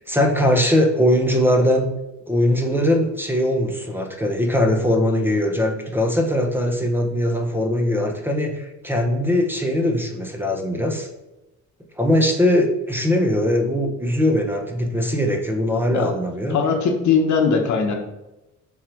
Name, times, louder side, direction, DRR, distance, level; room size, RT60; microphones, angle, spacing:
voice 1, 0.0-1.9 2.3-11.1 12.0-16.6, left 1 dB, 5° right, 3 dB, 1.0 m, -20 dB
voice 2, 16.5-18.0, left 5 dB, 70° left, 2 dB, 1.3 m, -20 dB
7.3 x 3.4 x 4.6 m, 0.97 s
cardioid pair, 90°, 30 cm